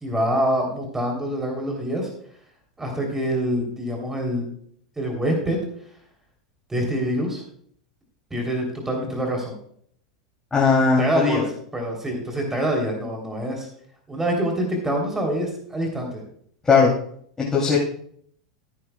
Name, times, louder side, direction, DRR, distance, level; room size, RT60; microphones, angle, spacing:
voice 1, 0.0-2.1 2.8-4.4 5.0-5.6 6.7-7.4 8.3-9.6 11.0-11.5 11.7-13.7 14.1-16.2, equal, 10° right, 1 dB, 3.3 m, -25 dB
voice 2, 10.5-11.4 16.6-16.9 17.4-17.8, left 5 dB, 15° left, -4 dB, 2.9 m, -18 dB
15.5 x 9.5 x 2.3 m, 0.63 s
hypercardioid pair, 90°, 3 cm